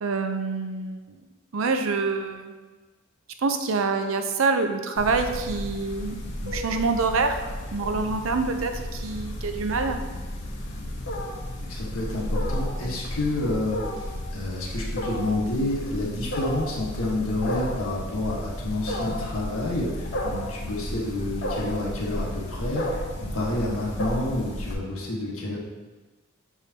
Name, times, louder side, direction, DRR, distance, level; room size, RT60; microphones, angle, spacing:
voice 1, 0.0-1.2 1.5-2.5 3.4-7.4 7.7-10.0, right 4 dB, 75° right, 7 dB, 0.6 m, -26 dB
Wild animals, 5.0-24.7, left 1 dB, 55° left, 0.9 m, -32 dB
voice 2, 11.7-25.6, left 2 dB, 90° left, -3 dB, 1.4 m, -29 dB
7.0 x 4.8 x 2.8 m, 1.3 s
head